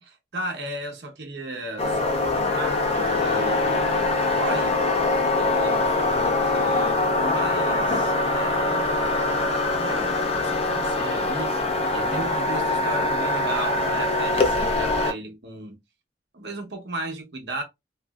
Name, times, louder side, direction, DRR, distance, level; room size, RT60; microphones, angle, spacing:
voice 1, 0.1-4.8 5.4-9.0 9.5-11.5 11.9-15.8 16.3-17.6, right 1 dB, 65° right, 1.0 m, -35 dB
sound 1, 1.8-15.1, left 2 dB, 35° left, 0.5 m, -23 dB
3.1 x 2.6 x 2.3 m
head